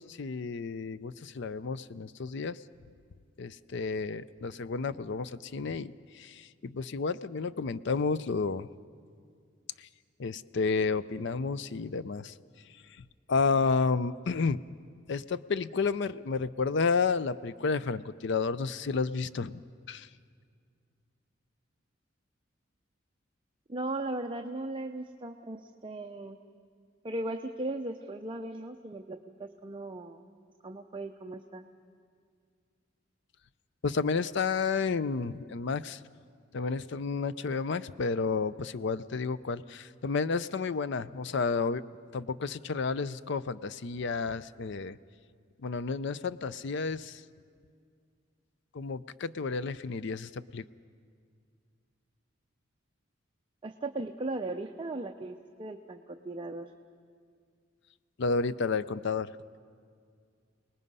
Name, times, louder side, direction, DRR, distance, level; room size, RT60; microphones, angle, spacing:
voice 1, 0.0-2.6 3.4-8.7 9.8-9.9 10.2-12.3 13.3-14.6 15.1-19.6 19.9-20.1 33.8-36.0 36.5-41.8 42.1-45.0 45.6-47.2 48.7-50.6 58.2-59.3, left 4 dB, 65° left, 16 dB, 0.5 m, -31 dB
voice 2, 23.7-26.4 27.0-30.3 30.6-31.6 53.6-56.7, right 2 dB, 25° right, 4 dB, 0.7 m, -37 dB
29.0 x 19.5 x 5.5 m, 2.2 s
head